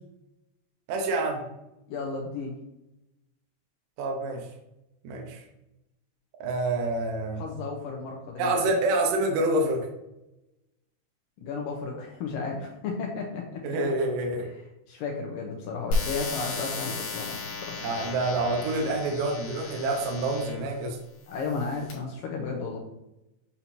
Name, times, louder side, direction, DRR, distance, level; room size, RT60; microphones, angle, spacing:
voice 1, 0.9-1.4 4.0-4.4 5.0-5.4 6.4-7.4 8.4-9.9 13.6-14.5 17.8-21.0, right 2 dB, 70° right, 1 dB, 2.1 m, -27 dB
voice 2, 1.9-2.6 7.4-8.7 11.4-13.8 14.4-14.6 14.9-17.7 21.3-22.8, left 4 dB, 85° left, 0 dB, 2.0 m, -34 dB
sound 1, 15.9-20.7 21.4-21.9, left 3 dB, 60° left, 3.4 m, -34 dB
8.6 x 4.3 x 2.7 m, 0.91 s
omnidirectional pair, 4.9 m